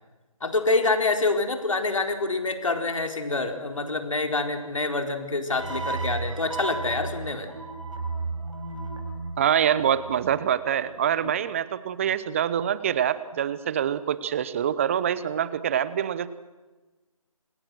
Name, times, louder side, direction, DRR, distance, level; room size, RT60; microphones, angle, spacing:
voice 1, 0.4-7.5, left 3 dB, 60° left, 6 dB, 4.2 m, -26 dB
sound 1, 5.5-10.8, right 3 dB, 60° right, 6.1 m, -34 dB
voice 2, 9.4-16.3, right 9 dB, 20° right, 16 dB, 1.0 m, -25 dB
29.5 x 27.5 x 6.3 m, 1.2 s
figure-of-eight pair, 150°, 18 cm